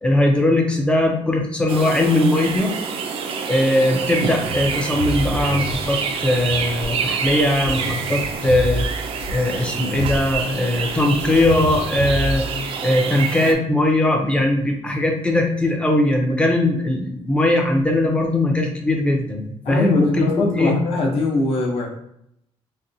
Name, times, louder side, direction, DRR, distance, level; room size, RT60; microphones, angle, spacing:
voice 1, 0.0-2.8 3.5-8.9 9.3-12.5 12.8-20.7, left 1 dB, 10° left, 1 dB, 0.5 m, -20 dB
sound 1, 1.7-13.5, right 6 dB, 55° right, 0.3 m, -27 dB
sound 2, 4.4-8.9 9.2-12.4, right 1 dB, 85° right, 0.7 m, -30 dB
voice 2, 19.6-21.9, left 2 dB, 55° left, 0 dB, 0.7 m, -22 dB
4.1 x 2.2 x 2.6 m, 0.75 s
cardioid pair, 175°, 11 cm